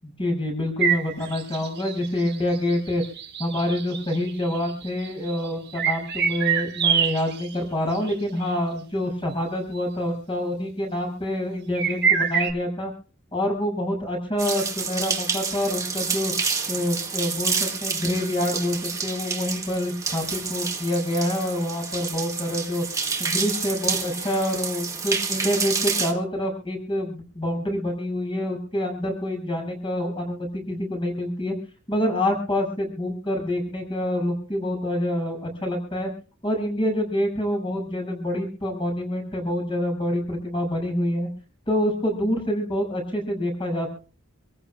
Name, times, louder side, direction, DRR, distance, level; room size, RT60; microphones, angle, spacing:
voice 1, 0.0-3.0 3.4-12.9 13.3-16.3 16.7-22.8 23.2-31.5 31.9-36.1 36.4-41.3 41.7-43.9, left 1 dB, 25° left, 2 dB, 6.9 m, -26 dB
sound 1, 0.8-7.5 7.9-8.1 8.4-8.5 9.7-9.8 11.7-12.5, right 7 dB, 50° right, 1.8 m, -25 dB
sound 2, 14.4-26.1, right 5 dB, 15° right, 1.8 m, -29 dB
27.5 x 15.0 x 2.3 m, 0.38 s
head